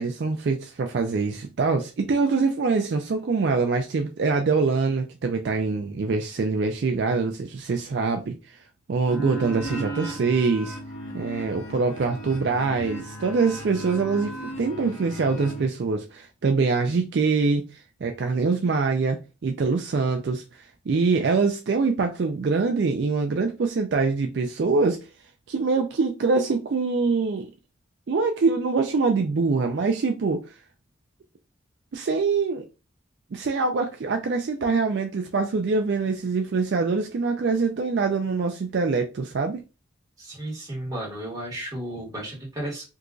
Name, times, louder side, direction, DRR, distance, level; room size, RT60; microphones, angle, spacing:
voice 1, 0.0-8.6 8.9-10.8 11.1-25.0 25.5-27.5 28.1-30.4 31.9-32.7 33.3-39.6, right 4 dB, 55° right, 0.4 m, -24 dB
sound 1, 9.1-15.6, right 1 dB, 60° left, 1.2 m, -36 dB
voice 2, 40.2-42.8, right 1 dB, 20° right, 1.7 m, -33 dB
3.6 x 2.9 x 2.5 m
head